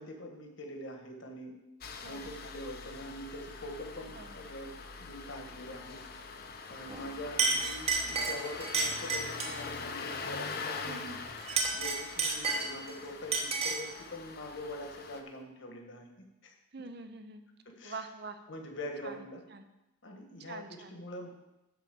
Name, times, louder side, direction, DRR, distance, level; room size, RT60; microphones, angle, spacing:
voice 1, 0.0-1.5 2.0-6.0 6.7-11.1 11.7-16.1 16.4-16.5 17.6-18.0 18.5-19.4 20.0-21.3, left 1 dB, 60° left, 3 dB, 1.6 m, -44 dB
Engine starting, 1.8-15.2, left 4 dB, 45° left, 0.8 m, -43 dB
Chink clink, 6.9-7.1 7.4-9.6 11.4-12.9 13.3-13.9, right 4 dB, 30° right, 1.1 m, -31 dB
voice 2, 10.8-11.2 16.7-17.4 17.8-18.4 19.0-19.2 19.5-19.6 20.5-21.0, right 3 dB, 50° right, 8 dB, 0.8 m, -44 dB
11.0 x 4.3 x 7.6 m, 0.95 s
head